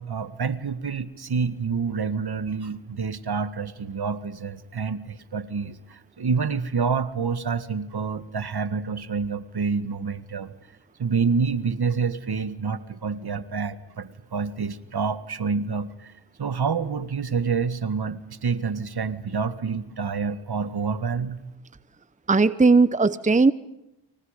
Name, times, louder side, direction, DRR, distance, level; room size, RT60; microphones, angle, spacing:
voice 1, 0.0-10.5 11.0-16.1 16.4-21.4, right 5 dB, 55° right, 12 dB, 1.9 m, -28 dB
voice 2, 22.3-23.5, right 3 dB, 15° right, 15 dB, 0.9 m, -18 dB
30.0 x 26.0 x 5.2 m, 0.90 s
cardioid pair, 45°, 45 cm